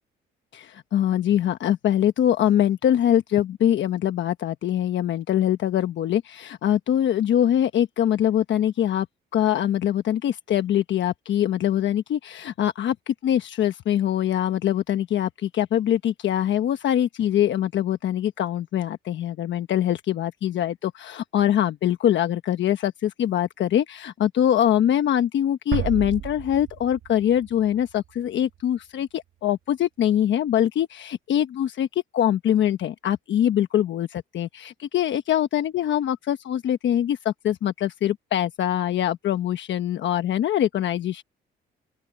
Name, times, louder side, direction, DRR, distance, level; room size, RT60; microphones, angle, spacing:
voice 1, 0.5-9.1 9.3-41.2, left 11 dB, 70° left, 1.1 m, -23 dB
sound 1, 25.7-28.6, right 12 dB, 80° right, 2.8 m, -32 dB
open air
cardioid pair, 90°, 20 cm